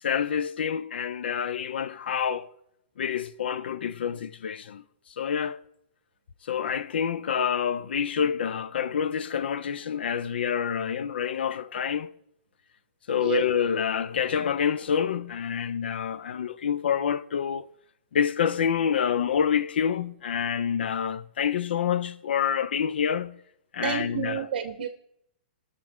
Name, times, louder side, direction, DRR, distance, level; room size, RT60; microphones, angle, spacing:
voice 1, 0.0-2.5 3.0-5.6 6.4-12.1 13.1-17.7 18.1-23.4 23.7-24.5, left 8 dB, 75° left, 0.5 m, -27 dB
voice 2, 23.8-24.9, right 7 dB, 60° right, 0.8 m, -29 dB
18.0 x 6.8 x 3.6 m
hypercardioid pair, 170°, 6 cm